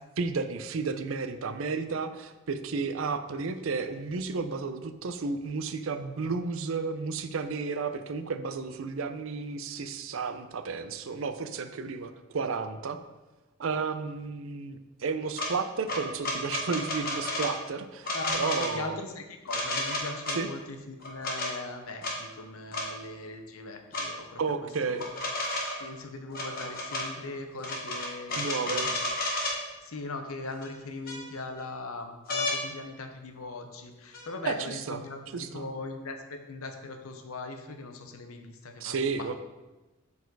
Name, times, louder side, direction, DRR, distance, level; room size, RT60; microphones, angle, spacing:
voice 1, 0.2-13.0 13.6-19.0 20.3-20.5 24.4-25.0 28.3-28.9 34.4-35.0 35.3-35.7 38.8-39.4, right 4 dB, 70° right, 10 dB, 0.5 m, -32 dB
sound 1, 15.4-15.5 15.9-17.5 18.0-18.7 19.5-20.4 21.0-21.5 22.0-22.1 22.7-22.9 23.9-24.1 25.0-25.8 26.3-27.1 27.6-29.6 30.6-30.7 31.1-31.6 32.3-32.6 34.1-34.3, left 2 dB, 45° left, 1.3 m, -31 dB
voice 2, 18.1-24.4 24.9-25.1 25.8-29.1 29.8-35.2 35.5-39.4, left 3 dB, 90° left, 6 dB, 0.8 m, -40 dB
6.9 x 4.1 x 4.7 m, 1.1 s
head